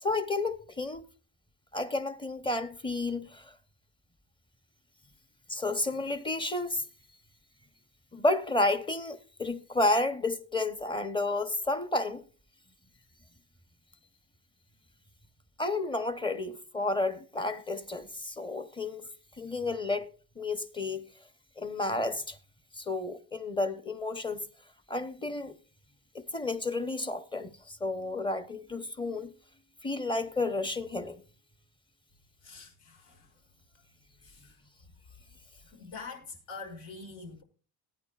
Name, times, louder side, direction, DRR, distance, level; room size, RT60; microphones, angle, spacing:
voice 1, 0.0-1.0 1.7-3.6 5.5-6.9 8.1-12.2 15.6-19.1 19.4-20.1 20.4-21.1 21.6-22.4 22.7-24.4 24.9-25.5 26.1-29.3 29.8-31.2, left 2 dB, 10° left, 0.8 m, -31 dB
voice 2, 32.4-33.4 33.7-33.8 34.2-34.9 35.6-37.4, left 4 dB, 80° left, 6.5 m, -46 dB
19.5 x 9.8 x 2.4 m
cardioid pair, 140°, 41 cm